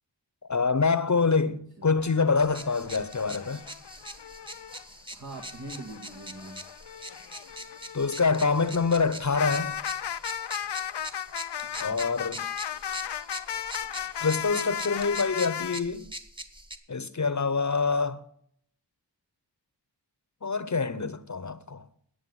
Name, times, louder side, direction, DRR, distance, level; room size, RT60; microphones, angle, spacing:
voice 1, 0.5-3.6 7.9-9.7 11.8-12.4 14.2-16.1 16.9-18.2 20.4-21.9, left 4 dB, 45° left, 0.9 m, -26 dB
voice 2, 1.5-1.8 5.1-6.6 11.7-12.0, right 2 dB, 60° right, 2.0 m, -43 dB
sound 1, 1.9-4.8 5.3-15.8, left 9 dB, 75° left, 0.6 m, -36 dB
sound 2, 2.4-16.8, right 1 dB, 10° right, 1.5 m, -43 dB
9.7 x 8.2 x 7.8 m
cardioid pair, 45°, 41 cm